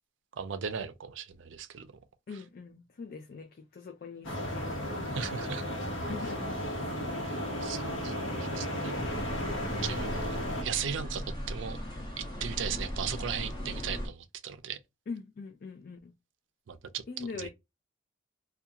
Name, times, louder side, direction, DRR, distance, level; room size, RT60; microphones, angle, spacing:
voice 1, 0.4-1.9 5.1-5.6 7.2-8.9 9.8-11.8 12.2-14.8 16.7-17.5, right 7 dB, 70° right, 0.4 m, -37 dB
voice 2, 2.3-5.5 6.1-6.6 9.0-9.3 15.1-16.1 17.1-17.5, left 4 dB, 50° left, 0.3 m, -43 dB
sound 1, 4.2-10.6, equal, 85° left, 0.9 m, -34 dB
sound 2, 8.9-14.1, equal, 25° left, 0.8 m, -38 dB
2.4 x 2.3 x 2.7 m
head